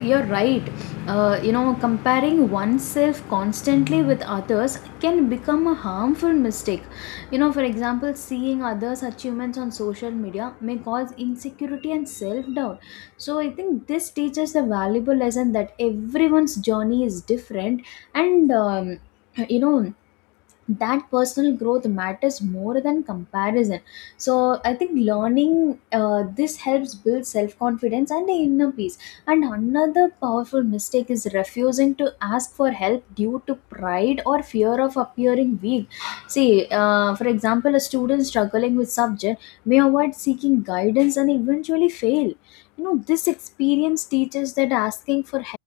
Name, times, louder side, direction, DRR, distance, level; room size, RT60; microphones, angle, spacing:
voice 1, 0.0-19.0 19.4-19.9 20.7-42.3 42.8-45.6, left 28 dB, 45° left, 0.4 m, -22 dB
figure-of-eight pair, 90°, 0 cm